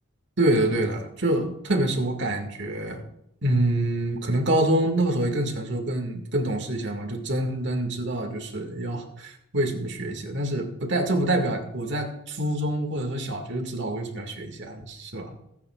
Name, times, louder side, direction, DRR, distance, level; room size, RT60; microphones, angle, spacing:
voice 1, 0.4-3.0 3.4-15.3, right 1 dB, 60° right, 4 dB, 2.1 m, -26 dB
21.5 x 10.5 x 2.4 m, 0.78 s
head